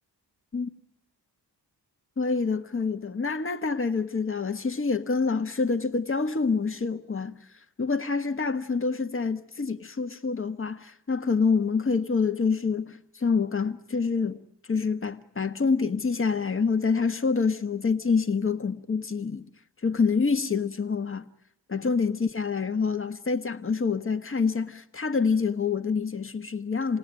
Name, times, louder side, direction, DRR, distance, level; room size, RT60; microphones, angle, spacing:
voice 1, 2.2-7.5 7.8-14.4 14.7-19.5 19.8-21.2 21.7-27.0, left 5 dB, 30° left, 1.2 m, -26 dB
28.5 x 18.5 x 9.0 m
cardioid pair, 90°, 42 cm